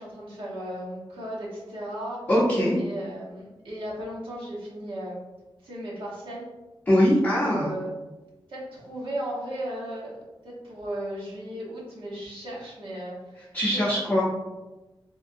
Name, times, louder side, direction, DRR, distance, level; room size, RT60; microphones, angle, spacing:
voice 1, 0.0-2.3 2.7-5.2 5.6-6.5 7.1-7.9 8.5-13.4 13.7-14.2, right 1 dB, 75° right, -6 dB, 1.0 m, -36 dB
voice 2, 2.3-2.8 6.9-7.7 13.5-14.2, equal, 20° left, -10 dB, 0.7 m, -21 dB
3.4 x 2.2 x 2.6 m, 1.1 s
wide cardioid pair, 150°, 9 cm